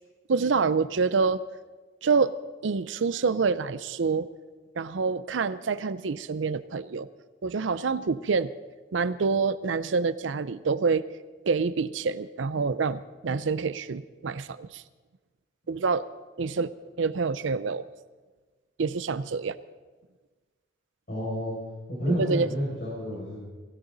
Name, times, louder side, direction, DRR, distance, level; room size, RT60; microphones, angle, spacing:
voice 1, 0.3-1.4 2.0-2.4 2.6-4.3 4.8-7.1 7.4-8.5 8.9-11.0 11.4-14.8 15.7-16.0 16.4-16.7 17.0-17.9 18.8-19.6 22.1-22.5, right 4 dB, 85° right, 15 dB, 0.5 m, -27 dB
voice 2, 21.1-21.5 21.9-23.4, equal, 50° left, -7 dB, 5.9 m, -30 dB
20.5 x 16.5 x 4.0 m, 1.3 s
head